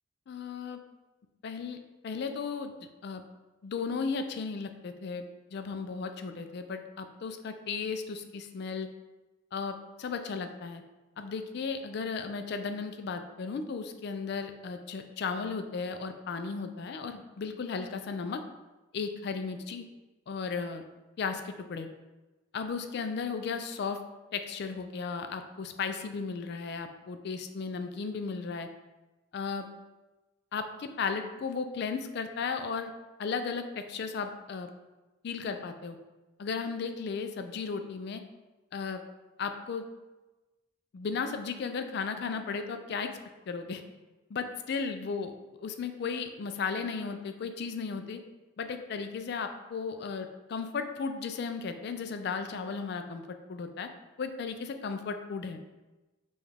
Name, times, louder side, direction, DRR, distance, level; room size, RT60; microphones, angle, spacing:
voice 1, 0.3-0.8 1.4-1.8 2.0-3.2 3.6-5.2 5.5-8.9 9.5-10.8 11.2-18.4 18.9-19.8 20.3-20.8 21.2-21.9 22.5-24.0 24.3-28.7 29.3-29.7 30.5-32.9 33.2-34.7 35.2-36.0 36.4-38.2 38.7-39.0 39.4-39.8 40.9-43.1 43.5-43.8 44.3-45.3 45.6-48.2 48.6-53.9 54.2-55.6, left 5 dB, 55° left, 7 dB, 0.3 m, -35 dB
5.1 x 2.4 x 3.3 m, 1.1 s
head